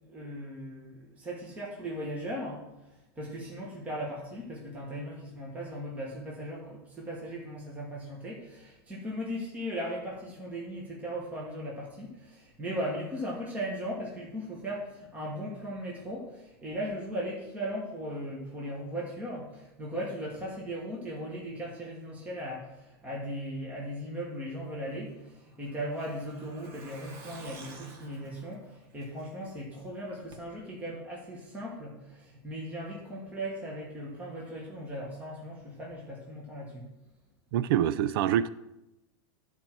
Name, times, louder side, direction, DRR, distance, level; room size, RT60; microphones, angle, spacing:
voice 1, 0.0-36.8, equal, 10° right, -4 dB, 1.3 m, -38 dB
Truck, 24.9-29.6 29.9-30.0 30.3-30.4, right 3 dB, 45° right, 1.3 m, -50 dB
voice 2, 37.5-38.5, right 10 dB, 65° right, 15 dB, 0.4 m, -25 dB
11.5 x 4.5 x 5.9 m, 0.93 s
supercardioid pair, 170°, 13 cm